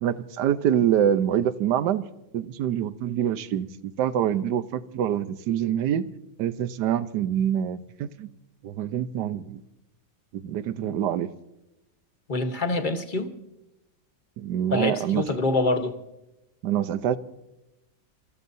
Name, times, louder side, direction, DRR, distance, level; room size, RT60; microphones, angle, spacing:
voice 1, 0.0-2.0 2.3-6.1 6.4-8.3 8.6-9.6 10.3-11.3 14.4-15.2 16.6-17.2, right 10 dB, 70° right, 1.3 m, -25 dB
voice 2, 12.3-13.3 14.7-16.0, left 2 dB, 30° left, 1.2 m, -25 dB
27.5 x 15.0 x 2.7 m
omnidirectional pair, 2.0 m